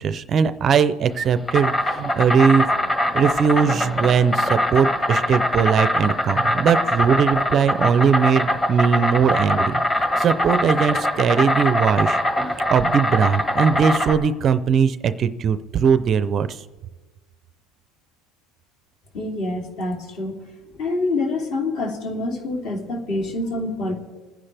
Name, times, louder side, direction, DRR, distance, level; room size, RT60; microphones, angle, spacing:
voice 1, 0.0-2.7 3.1-9.8 10.2-12.2 12.7-16.6, right 6 dB, 30° right, 13 dB, 0.5 m, -20 dB
Insect, 1.1-14.1, left 1 dB, 15° left, 1.5 m, -22 dB
voice 2, 19.1-20.4 20.7-23.9, left 2 dB, 50° left, 1 dB, 3.1 m, -26 dB
27.5 x 9.8 x 3.4 m, 1.3 s
cardioid pair, 150°, 0 cm